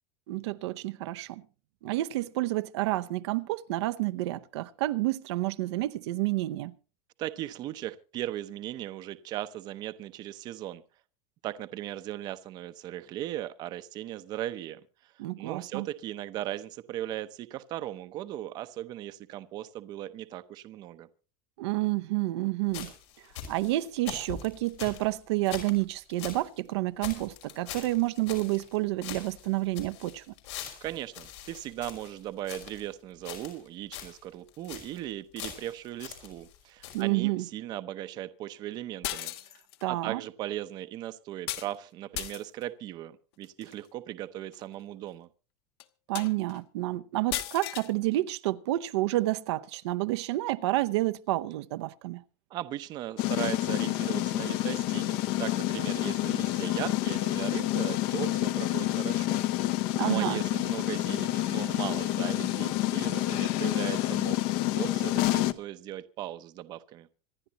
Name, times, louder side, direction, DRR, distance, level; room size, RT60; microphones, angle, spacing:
voice 1, 0.3-1.4 1.8-6.7 15.2-15.9 21.6-22.9 23.5-30.3 36.9-37.5 39.8-40.2 46.1-52.2 59.9-60.4, right 18 dB, 75° right, 0.8 m, -29 dB
voice 2, 7.2-10.8 11.4-15.1 15.4-21.1 30.8-39.6 39.9-45.3 52.5-64.4 64.7-67.1, right 13 dB, 30° right, 0.7 m, -38 dB
sound 1, 22.7-26.5 26.7-26.8 27.0-28.8 29.0-32.9 33.2-33.7 33.9-34.2 34.5-35.0 35.4-36.6 36.8-37.0, left 10 dB, 85° left, 5.7 m, -43 dB
sound 2, 39.0-39.8 41.5-41.7 42.1-42.6 43.4-43.7 44.5-44.6 45.1-45.2 45.8-45.9 46.2-46.6 47.3-47.9, left 14 dB, 65° left, 1.2 m, -35 dB
sound 3, 53.2-65.5, left 15 dB, 45° left, 0.8 m, -28 dB
26.0 x 10.5 x 2.9 m
supercardioid pair, 180°, 14 cm